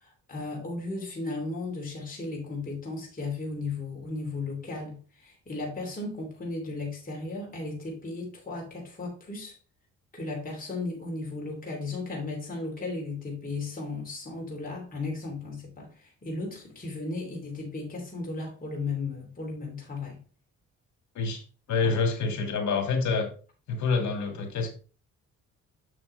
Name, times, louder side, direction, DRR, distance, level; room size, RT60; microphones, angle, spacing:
voice 1, 0.0-9.5 10.1-20.2 21.8-21.9, left 3 dB, 30° left, 2.8 m, -35 dB
voice 2, 21.7-23.3 23.7-24.7, left 4 dB, 70° left, 2.1 m, -27 dB
7.1 x 6.0 x 3.3 m
cardioid pair, 90°, 30 cm